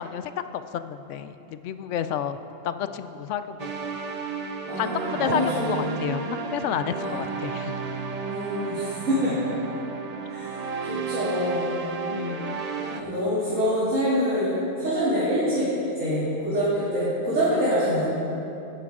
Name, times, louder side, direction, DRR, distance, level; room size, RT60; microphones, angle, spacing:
voice 1, 0.0-2.4 2.6-4.0 4.8-7.7 12.1-12.6, left 9 dB, 75° left, 11 dB, 0.9 m, -31 dB
sound 1, 3.6-13.0, right 4 dB, 40° right, 0.6 m, -32 dB
voice 2, 4.7-5.8 6.9-7.3 8.3-9.3 10.3-11.7 12.9-15.7 16.0-18.0, equal, 80° right, -12 dB, 3.2 m, -26 dB
15.5 x 11.0 x 3.7 m, 2.9 s
omnidirectional pair, 1.3 m